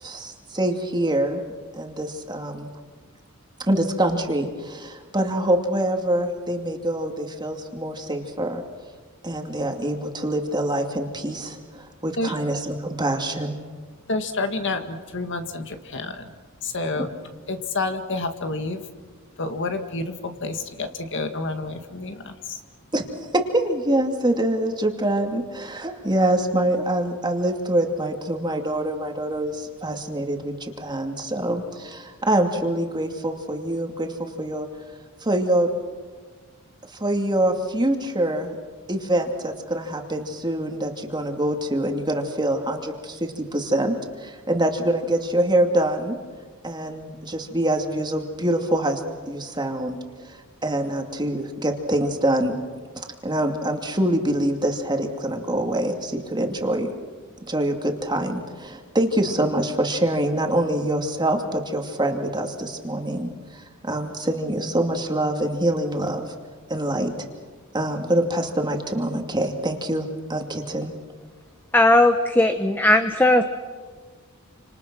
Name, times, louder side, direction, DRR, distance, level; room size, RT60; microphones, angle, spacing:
voice 1, 0.0-1.4 1.7-2.7 3.7-8.6 9.2-13.6 17.0-17.1 22.9-23.0 23.3-34.7 35.2-35.7 36.9-38.6 38.9-46.2 46.6-50.0 50.3-52.6 52.9-56.9 57.5-66.3 66.7-67.1 67.7-70.9, right 1 dB, 20° right, 3 dB, 2.5 m, -25 dB
voice 2, 14.1-16.3 16.6-17.1 17.5-18.8 19.4-22.6, left 3 dB, 60° left, 6 dB, 1.9 m, -29 dB
voice 3, 71.7-73.4, left 1 dB, 10° left, 7 dB, 0.9 m, -17 dB
29.5 x 26.5 x 6.1 m, 1.5 s
head